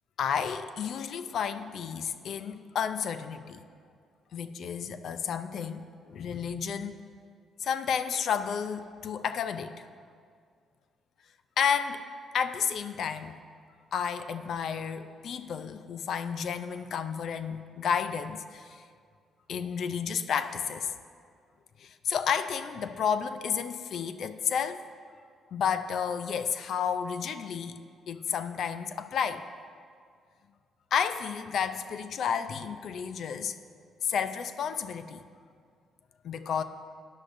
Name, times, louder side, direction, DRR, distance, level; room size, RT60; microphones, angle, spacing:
voice 1, 0.2-3.6 4.3-6.9 7.6-9.9 11.6-12.0 12.3-13.4 13.9-18.8 19.5-20.9 21.8-24.8 25.5-27.8 28.1-29.4 30.9-33.6 34.0-35.2 36.2-36.6, left 7 dB, 65° left, 11 dB, 0.4 m, -31 dB
13.0 x 10.0 x 2.6 m, 2.1 s
cardioid pair, 90°, 0 cm